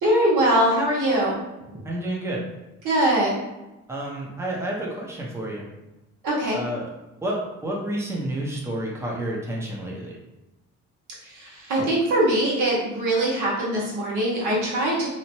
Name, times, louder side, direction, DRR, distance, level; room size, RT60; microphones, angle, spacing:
voice 1, 0.0-1.4 2.8-3.3 6.2-6.6 11.2-15.1, right 1 dB, 80° right, -5 dB, 1.1 m, -22 dB
voice 2, 1.8-2.4 3.9-5.7 6.5-6.9 7.2-10.2, right 1 dB, 10° right, -3 dB, 0.6 m, -30 dB
2.8 x 2.1 x 2.9 m, 1.0 s
cardioid pair, 90°, 30 cm